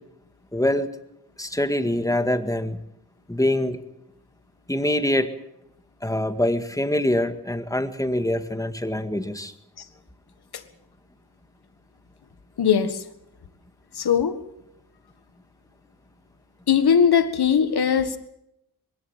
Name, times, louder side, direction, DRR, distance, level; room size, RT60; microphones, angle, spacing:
voice 1, 0.5-0.9 1.4-2.8 3.3-3.8 4.7-5.3 6.0-9.5, left 1 dB, 10° left, 8 dB, 2.0 m, -24 dB
voice 2, 12.6-13.0 14.0-14.4 16.7-18.2, left 7 dB, 80° left, 11 dB, 1.7 m, -19 dB
21.5 x 17.5 x 7.5 m, 0.81 s
cardioid pair, 70°, 38 cm